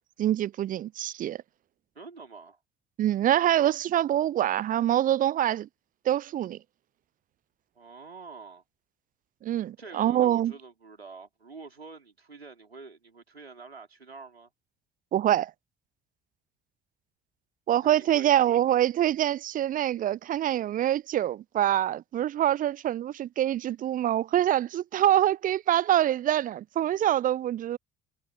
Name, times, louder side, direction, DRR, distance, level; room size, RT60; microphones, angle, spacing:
voice 1, 0.2-1.4 3.0-5.7 6.1-6.6 9.4-10.5 15.1-15.5 17.7-27.8, right 12 dB, 30° right, 0.3 m, -25 dB
voice 2, 1.9-2.6 7.7-8.6 9.8-14.5 17.8-18.3, right 4 dB, 90° right, 4.2 m, -47 dB
figure-of-eight pair, 55°, 30 cm